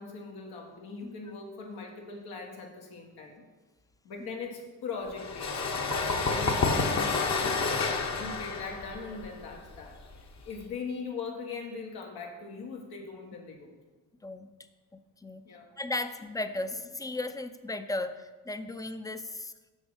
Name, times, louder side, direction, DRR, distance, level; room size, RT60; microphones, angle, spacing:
voice 1, 0.0-3.5 4.0-5.6 6.0-10.0 10.4-13.8 15.4-15.7, left 4 dB, 85° left, 0 dB, 1.5 m, -40 dB
sound 1, 5.1-10.6, left 4 dB, 45° left, 1.0 m, -29 dB
voice 2, 15.8-19.5, left 2 dB, 10° left, 10 dB, 0.4 m, -35 dB
6.4 x 6.2 x 4.9 m, 1.2 s
cardioid pair, 85°, 37 cm